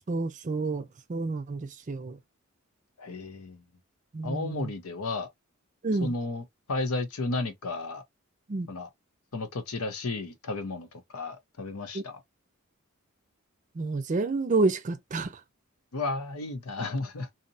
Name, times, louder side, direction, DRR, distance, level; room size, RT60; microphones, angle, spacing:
voice 1, 0.1-2.2 4.1-4.7 5.8-6.1 8.5-8.7 11.9-12.0 13.8-15.3, right 3 dB, 35° right, 0.4 m, -29 dB
voice 2, 3.0-3.6 4.2-5.3 6.0-8.0 8.7-8.9 9.3-12.2 15.9-17.3, left 3 dB, 90° left, 0.7 m, -33 dB
2.7 x 2.0 x 2.6 m
head